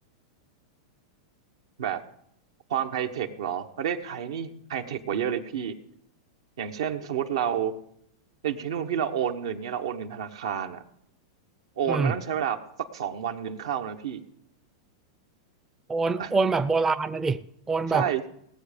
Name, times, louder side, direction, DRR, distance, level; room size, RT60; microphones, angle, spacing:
voice 1, 2.7-5.7 6.6-7.7 8.4-10.8 11.8-12.6 12.9-14.2 16.2-16.3 17.9-18.3, right 8 dB, 80° right, 7 dB, 1.1 m, -29 dB
voice 2, 15.9-18.1, right 4 dB, 15° right, 12 dB, 0.4 m, -25 dB
18.5 x 7.4 x 5.2 m, 0.72 s
hypercardioid pair, 130°, 3 cm